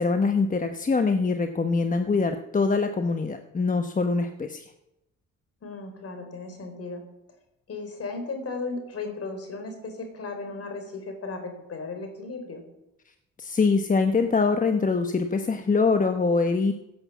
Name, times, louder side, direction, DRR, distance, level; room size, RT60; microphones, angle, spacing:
voice 1, 0.0-4.7 13.4-16.7, left 4 dB, 25° left, 6 dB, 1.1 m, -24 dB
voice 2, 5.6-7.0 7.7-12.6, left 3 dB, 50° left, 6 dB, 4.2 m, -35 dB
16.0 x 8.0 x 7.2 m, 0.88 s
cardioid pair, 90°, 30 cm